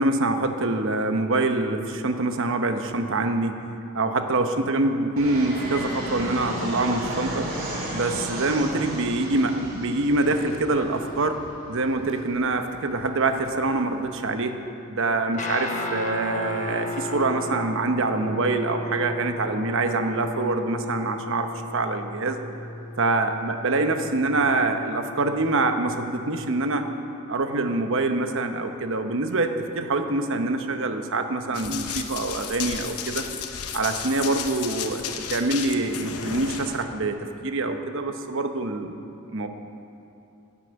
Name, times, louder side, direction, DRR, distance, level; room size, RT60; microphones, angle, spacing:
voice 1, 0.0-3.6 3.9-7.5 7.9-11.4 11.7-14.6 14.9-21.5 21.7-22.4 23.0-26.8 27.3-33.3 33.7-39.0 39.3-39.5, right 2 dB, 60° right, 6 dB, 0.9 m, -25 dB
Fixed-wing aircraft airplane, 5.2-14.2, right 1 dB, 40° right, 2.8 m, -34 dB
Guitar, 15.3-26.8, left 1 dB, 35° left, 1.1 m, -35 dB
Run, 31.5-36.8, left 8 dB, 80° left, 0.9 m, -33 dB
11.0 x 9.9 x 8.0 m, 2.8 s
head